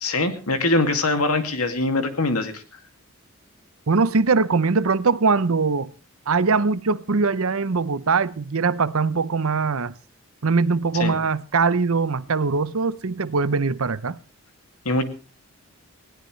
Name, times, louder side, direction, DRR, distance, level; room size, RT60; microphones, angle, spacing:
voice 1, 0.0-2.8 10.9-11.2 14.8-15.0, left 2 dB, 90° left, 2.4 m, -23 dB
voice 2, 3.9-5.9 6.3-9.9 10.4-14.2, right 4 dB, 75° right, 0.7 m, -21 dB
20.5 x 17.0 x 3.2 m
head